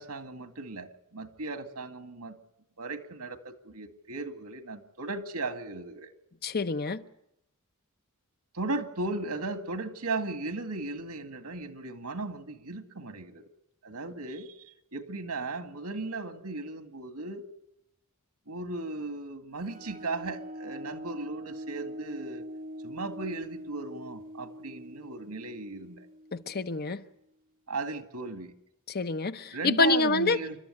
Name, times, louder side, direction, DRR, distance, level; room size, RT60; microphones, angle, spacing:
voice 1, 0.0-2.4 2.8-6.1 8.5-13.4 13.8-17.5 18.5-22.5 22.8-26.1 27.7-28.5 29.5-30.6, right 3 dB, 85° right, 2.1 m, -36 dB
voice 2, 6.4-7.0 26.3-27.0 28.9-30.4, left 3 dB, 45° left, 0.9 m, -27 dB
sound 1, 19.6-27.0, equal, 40° right, 0.8 m, -43 dB
29.0 x 13.0 x 9.8 m
head